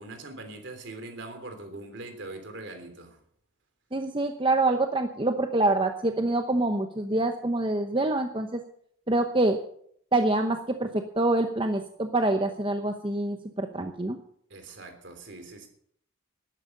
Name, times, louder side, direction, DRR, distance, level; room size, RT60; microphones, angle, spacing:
voice 1, 0.0-3.2 14.5-15.7, right 2 dB, 60° right, 3.3 m, -42 dB
voice 2, 3.9-8.6 9.1-9.6 10.1-14.2, right 2 dB, 25° right, 0.8 m, -26 dB
12.5 x 11.0 x 6.7 m
head